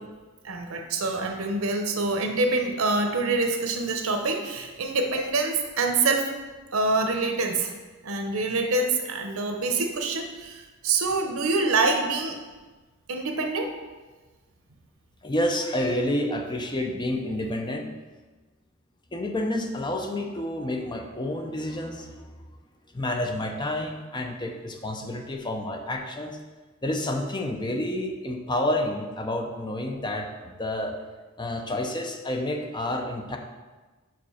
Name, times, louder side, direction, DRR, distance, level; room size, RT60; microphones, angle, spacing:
voice 1, 0.4-6.3 6.7-7.7 8.0-12.3 13.1-13.7, right 3 dB, 85° right, 4 dB, 0.9 m, -26 dB
voice 2, 15.2-17.9 19.1-22.2 22.9-26.4 26.8-30.3 30.6-30.9 31.4-33.4, left 1 dB, 20° left, 3 dB, 0.6 m, -29 dB
5.4 x 5.2 x 5.6 m, 1.3 s
head